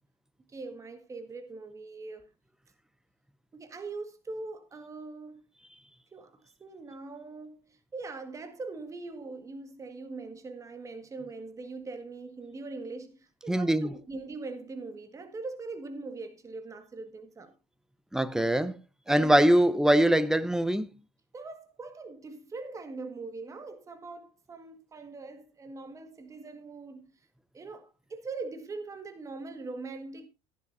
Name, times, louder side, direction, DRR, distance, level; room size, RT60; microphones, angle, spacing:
voice 1, 0.5-2.3 3.5-5.4 6.1-17.5 19.1-19.4 21.3-27.1 27.5-30.3, right 3 dB, 20° right, 1.7 m, -42 dB
voice 2, 13.5-13.9 18.1-18.8 19.1-20.9, right 1 dB, 5° right, 0.7 m, -23 dB
15.0 x 10.5 x 2.6 m
supercardioid pair, 125°, 15 cm